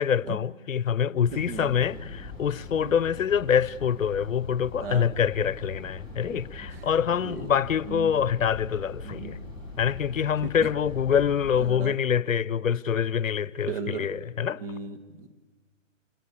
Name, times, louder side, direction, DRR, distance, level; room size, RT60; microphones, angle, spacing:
voice 1, 0.0-9.4 9.8-14.6, left 8 dB, 80° left, 0.7 m, -25 dB
sound 1, 1.3-11.7, left 2 dB, 10° right, 4.9 m, -41 dB
voice 2, 1.3-1.7 2.8-2.9 4.8-5.1 6.3-6.4 6.7-6.8 7.2-7.5 7.9-8.1 9.0-9.3 10.4-10.5 11.6-12.0 13.7-14.2 14.6-15.3, right 5 dB, 45° right, 1.9 m, -36 dB
27.0 x 21.5 x 8.4 m
hypercardioid pair, 140°, 39 cm